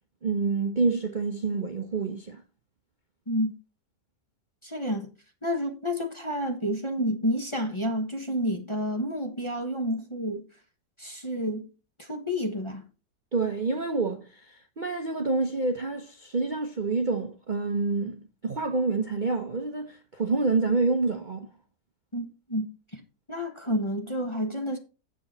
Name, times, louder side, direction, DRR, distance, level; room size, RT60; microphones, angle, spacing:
voice 1, 0.2-2.4 13.3-21.5, right 3 dB, 35° right, 0.8 m, -27 dB
voice 2, 4.6-5.1 5.4-10.4 11.0-11.7 12.0-12.8 22.1-23.0 23.3-24.8, equal, 20° left, 1.1 m, -30 dB
8.5 x 7.8 x 4.2 m
omnidirectional pair, 1.9 m